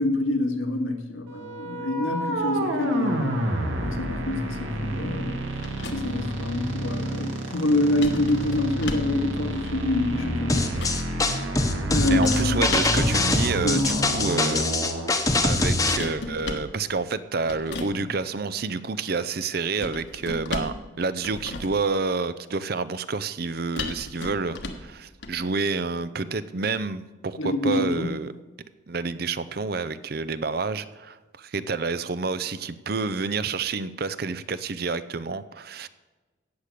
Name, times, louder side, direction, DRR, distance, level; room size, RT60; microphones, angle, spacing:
voice 1, 0.0-3.4 3.8-5.4 5.9-10.7 11.9-12.6 13.6-13.8 27.4-28.2, left 2 dB, 85° left, 3 dB, 1.9 m, -26 dB
sound 1, 1.3-15.1, right 1 dB, 80° right, 2.2 m, -29 dB
sound 2, 5.6-6.3 8.0-9.2 10.2-11.1 12.1-13.0 13.7-14.3 15.6-16.7 17.5-18.0 19.8-20.9 21.2-21.9 23.8-24.9 25.2-25.4, left 2 dB, 60° left, 1.3 m, -35 dB
sound 3, 10.5-16.0, left 2 dB, 15° left, 1.0 m, -23 dB
voice 2, 12.1-14.6 15.4-28.3 28.9-35.9, right 4 dB, 50° right, 14 dB, 0.6 m, -29 dB
16.0 x 6.6 x 8.4 m, 1.2 s
head